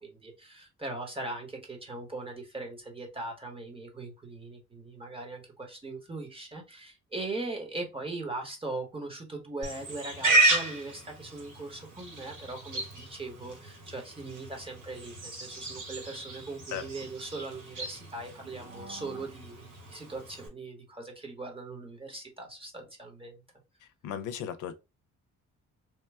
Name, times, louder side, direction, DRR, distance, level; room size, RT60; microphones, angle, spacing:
voice 1, 0.0-23.4, right 2 dB, 20° right, 1.2 m, -40 dB
Livestock farm animals working animals, 9.6-20.5, right 2 dB, 80° right, 2.0 m, -33 dB
voice 2, 23.8-24.7, left 9 dB, 80° left, 0.5 m, -36 dB
3.0 x 2.2 x 3.4 m
cardioid pair, 90°, 30 cm